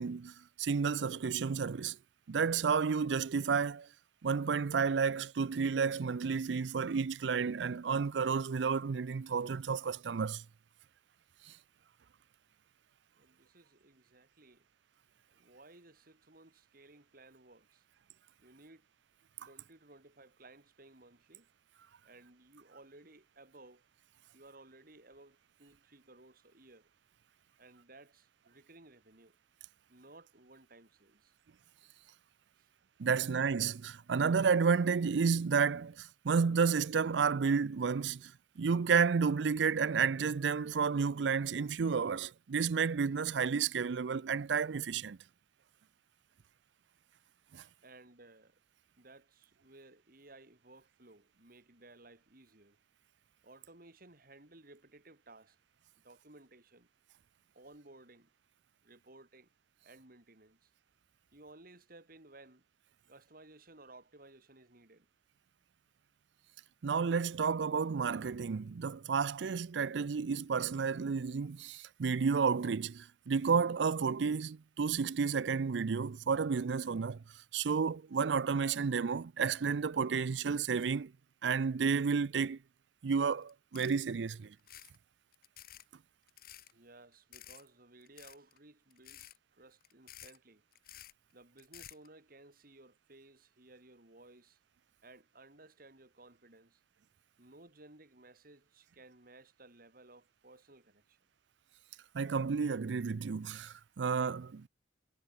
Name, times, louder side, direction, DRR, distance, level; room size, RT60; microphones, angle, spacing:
voice 1, 0.0-2.0 2.3-3.9 4.2-10.4 11.5-11.6 33.0-45.2 47.5-47.6 66.8-77.2 77.5-81.1 81.4-82.6 83.0-84.5 102.1-104.7, right 5 dB, 80° right, 0.5 m, -31 dB
voice 2, 13.2-14.6 15.3-17.9 18.4-18.9 19.5-21.5 22.0-23.8 24.3-26.9 27.6-29.4 29.9-31.3 32.6-32.7 47.8-48.6 49.0-52.8 53.4-55.6 56.0-56.9 57.5-58.3 58.8-59.5 59.8-60.7 61.3-62.6 63.1-65.1 86.7-90.6 91.3-94.6 95.0-96.8 97.4-101.2, right 2 dB, 55° right, 4.0 m, -58 dB
sound 1, 83.4-83.5 83.7-84.1 84.6-85.0 85.3-85.8 86.3-86.7 87.3-87.6 88.0-88.6 88.9-89.4 89.8-90.4 90.7-91.1 91.6-92.1, left 12 dB, 55° left, 2.1 m, -52 dB
head